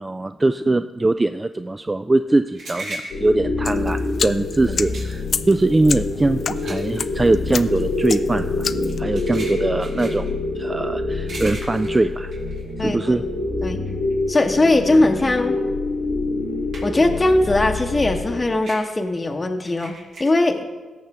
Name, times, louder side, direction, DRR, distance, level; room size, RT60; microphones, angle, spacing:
voice 1, 0.0-8.7 9.0-10.3 10.6-12.3 12.8-13.2, right 2 dB, 25° right, 10 dB, 0.3 m, -21 dB
sound 1, 2.0-13.4 13.8-17.2 17.5-20.3, right 1 dB, 80° right, 3.1 m, -39 dB
sound 2, 3.1-18.4, left 2 dB, 90° left, 1.6 m, -26 dB
sound 3, 3.6-9.0, left 6 dB, 60° left, 0.3 m, -31 dB
voice 2, 12.8-13.2 13.6-13.8 14.3-15.6 16.8-19.9 20.2-20.6, left 2 dB, 30° left, 3 dB, 0.8 m, -19 dB
17.5 x 6.5 x 3.5 m, 1.3 s
cardioid pair, 60°, 0 cm